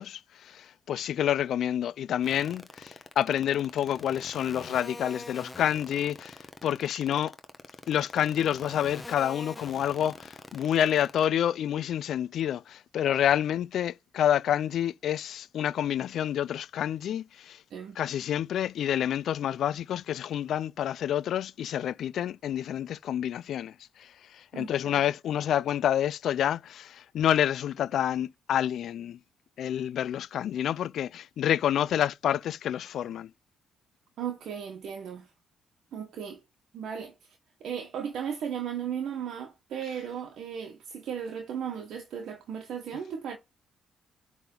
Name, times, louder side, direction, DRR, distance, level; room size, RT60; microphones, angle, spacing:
voice 1, 0.0-6.4 6.6-7.3 7.9-17.6 18.0-23.7 24.5-29.2 29.6-33.3, left 10 dB, 70° left, 0.3 m, -28 dB
sound 1, 2.2-11.2, left 2 dB, 15° left, 1.0 m, -43 dB
voice 2, 24.5-25.0 34.2-35.3 35.9-36.4 36.7-37.1 37.6-43.4, right 8 dB, 70° right, 1.2 m, -36 dB
10.5 x 3.5 x 3.8 m
cardioid pair, 90°, 0 cm